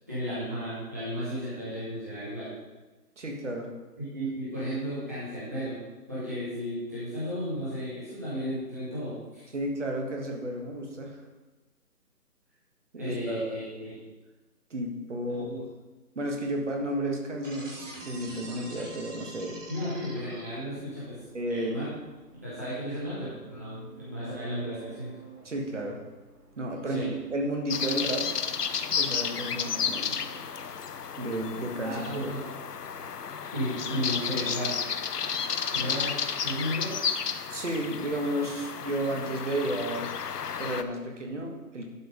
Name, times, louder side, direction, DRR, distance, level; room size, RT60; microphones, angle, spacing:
voice 1, 0.1-2.5 4.0-5.8 6.1-9.4 12.9-13.9 15.3-15.6 19.7-21.8 22.4-25.1 26.9-27.1 31.8-32.4 33.5-34.8 35.7-36.9, equal, 10° right, -12 dB, 1.0 m, -34 dB
voice 2, 3.2-3.7 9.5-11.2 12.9-13.6 14.7-15.7 16.2-19.6 21.3-21.8 25.5-26.0 26.6-28.3 29.0-30.2 31.2-32.3 37.5-40.1 40.6-41.9, right 1 dB, 50° right, 2 dB, 1.7 m, -32 dB
sound 1, 16.9-33.1, right 7 dB, 90° right, 2.4 m, -53 dB
sound 2, 17.4-20.9, right 1 dB, 25° right, 2.5 m, -45 dB
sound 3, 27.7-40.8, left 6 dB, 75° left, 0.8 m, -32 dB
11.5 x 5.2 x 5.1 m, 1.2 s
hypercardioid pair, 175°, 47 cm